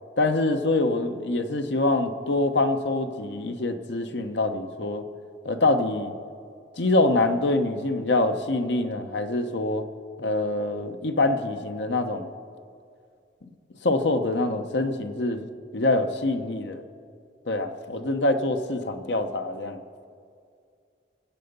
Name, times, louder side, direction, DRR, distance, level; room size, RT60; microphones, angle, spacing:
voice 1, 0.2-5.0 5.4-6.1 6.8-9.8 10.2-12.3 13.8-15.5 15.7-16.8 17.5-19.8, left 2 dB, 75° left, 7 dB, 1.0 m, -25 dB
23.5 x 8.0 x 5.4 m, 2.3 s
head